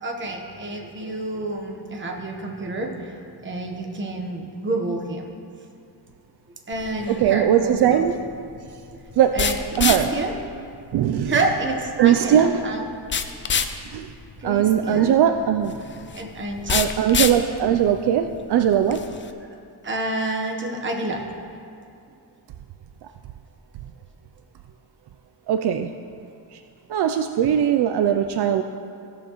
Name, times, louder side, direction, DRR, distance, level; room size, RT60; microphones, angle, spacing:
voice 1, 0.0-5.4 6.7-8.0 8.9-9.0 9.3-10.3 11.3-13.2 14.4-15.2 16.1-16.8 17.1-17.2 19.8-21.3, right 2 dB, 30° right, 1 dB, 1.1 m, -29 dB
sound 1, 6.7-19.3, left 6 dB, 30° left, 0.4 m, -30 dB
voice 2, 7.1-8.2 9.2-9.5 9.8-10.1 10.9-11.3 12.0-12.5 13.9-14.1 14.4-15.7 16.7-19.0 25.5-25.9 26.5-26.6 26.9-28.6, right 9 dB, 70° right, 6 dB, 0.5 m, -20 dB
16.5 x 6.9 x 3.1 m, 2.4 s
wide cardioid pair, 140°, 41 cm